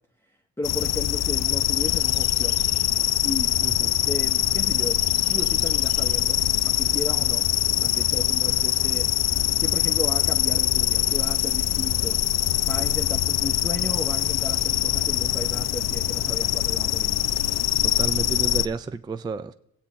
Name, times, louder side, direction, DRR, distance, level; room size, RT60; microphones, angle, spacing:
voice 1, 0.3-2.7 3.2-3.5 4.0-7.5 7.8-9.1 9.6-12.2 12.6-17.2, left 2 dB, 10° left, 0.8 m, -34 dB
sound 1, 0.6-18.7, left 13 dB, 60° left, 0.5 m, -23 dB
voice 2, 3.6-3.9 17.8-19.5, right 4 dB, 15° right, 0.3 m, -31 dB
20.0 x 8.5 x 3.0 m
cardioid pair, 90°, 30 cm